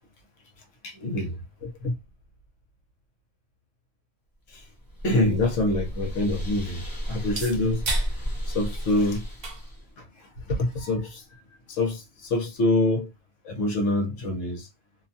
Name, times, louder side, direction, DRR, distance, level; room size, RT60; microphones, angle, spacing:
voice 1, 0.8-2.0 4.5-4.6 5.0-7.8 8.5-9.2 10.0-10.1 10.5-11.2 11.7-13.1 13.4-14.7, left 2 dB, 65° left, 1.1 m, -26 dB
sound 1, 4.5-9.9, equal, 25° left, 0.4 m, -33 dB
sound 2, 4.8-12.8, right 2 dB, 50° right, 0.9 m, -41 dB
2.7 x 2.2 x 2.6 m
omnidirectional pair, 1.5 m